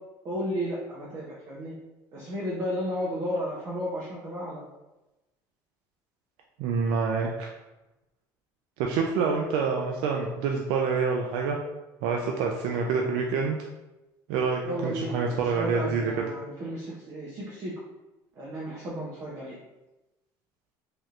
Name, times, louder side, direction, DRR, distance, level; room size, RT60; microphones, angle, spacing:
voice 1, 0.2-1.7 2.1-4.6 14.6-17.8 18.4-19.6, equal, 40° right, -5 dB, 0.7 m, -33 dB
voice 2, 6.6-7.5 8.8-11.6 12.0-13.6 14.3-16.1, right 5 dB, 80° right, 0 dB, 0.4 m, -27 dB
3.3 x 2.8 x 2.4 m, 1.0 s
cardioid pair, 135°, 8 cm